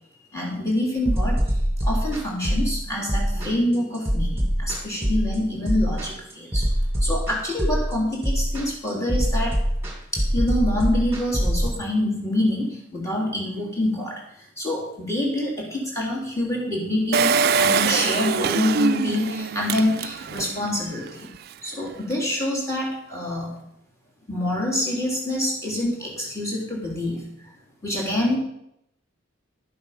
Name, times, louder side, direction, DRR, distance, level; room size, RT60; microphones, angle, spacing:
voice 1, 0.3-1.4 1.8-6.7 7.0-9.6 10.1-14.2 14.6-21.3 21.6-23.5 24.3-27.2 27.8-28.4, left 1 dB, 15° left, -2 dB, 3.1 m, -26 dB
sound 1, 1.0-11.7, equal, 15° right, 2.7 m, -24 dB
Engine, 17.1-20.6 21.1-21.2 21.3-21.4, right 5 dB, 50° right, 0.4 m, -23 dB
12.0 x 7.2 x 5.7 m, 0.77 s
head